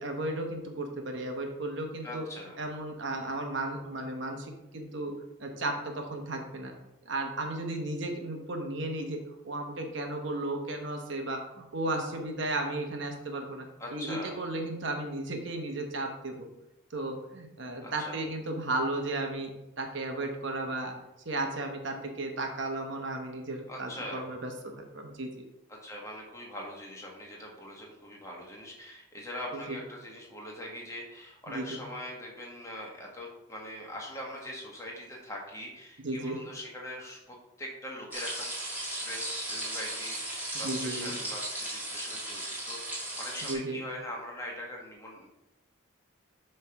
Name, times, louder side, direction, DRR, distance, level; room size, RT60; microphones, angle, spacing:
voice 1, 0.0-2.3 2.6-5.1 5.4-6.7 7.0-9.2 9.4-16.5 16.9-20.9 21.2-25.4 29.5-29.8 31.5-31.8 36.0-36.4 40.6-41.1 43.4-43.8, right 2 dB, 60° right, 3 dB, 1.0 m, -34 dB
voice 2, 2.0-2.6 13.8-14.3 17.8-18.2 23.7-24.2 25.7-45.3, left 1 dB, 15° left, -2 dB, 1.4 m, -42 dB
sound 1, 38.1-43.5, right 1 dB, 10° right, 2.0 m, -36 dB
7.6 x 3.3 x 5.8 m, 0.91 s
head